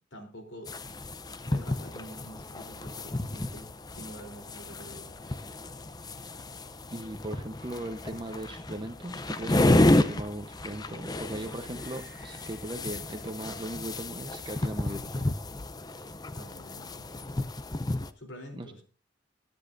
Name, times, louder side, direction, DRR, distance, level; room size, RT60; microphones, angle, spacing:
voice 1, 0.1-0.8 1.4-5.1 16.3-17.1 18.2-18.8, equal, 80° left, 3 dB, 3.6 m, -47 dB
sound 1, 0.6-18.1, left 1 dB, 20° left, 0.6 m, -31 dB
voice 2, 6.9-15.2 18.5-18.7, right 1 dB, 25° right, 5 dB, 0.9 m, -38 dB
sound 2, 7.3-10.9 11.7-13.5, equal, 50° left, 6.5 m, -58 dB
22.0 x 10.5 x 2.6 m, 0.37 s
head